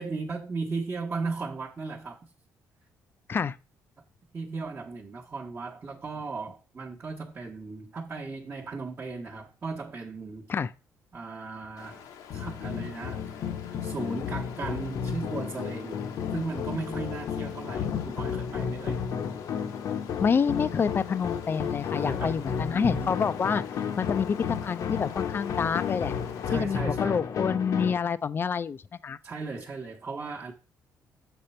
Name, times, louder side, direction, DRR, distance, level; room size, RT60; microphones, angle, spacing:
voice 1, 0.0-2.2 4.3-10.5 11.1-12.0 12.3-16.0 16.3-19.0 21.9-23.1 26.5-27.2 29.2-30.5, right 4 dB, 30° right, 1.1 m, -36 dB
Stream, 11.8-26.8, left 8 dB, 90° left, 0.9 m, -47 dB
sound 1, 12.3-28.0, left 7 dB, 65° left, 0.8 m, -32 dB
voice 2, 20.2-23.6 24.0-24.4 24.6-26.1 26.5-29.2, left 6 dB, 35° left, 0.4 m, -27 dB
6.8 x 5.2 x 4.3 m
cardioid pair, 95°, 6 cm